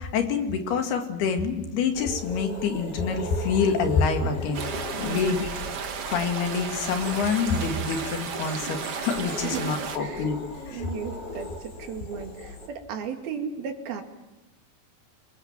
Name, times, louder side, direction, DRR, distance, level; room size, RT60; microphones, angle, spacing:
voice 1, 0.0-4.6 5.0-5.5 6.1-10.4 10.7-10.8, left 5 dB, 80° left, 5 dB, 4.2 m, -26 dB
sound 1, 1.9-12.7, left 2 dB, 30° left, 2.7 m, -39 dB
sound 2, 4.5-10.0, right 6 dB, 45° right, 2.2 m, -33 dB
voice 2, 5.1-5.4 9.4-9.7 10.0-10.3 10.7-14.0, right 6 dB, 70° right, 4 dB, 4.2 m, -35 dB
26.5 x 21.5 x 7.4 m, 1.0 s
omnidirectional pair, 4.5 m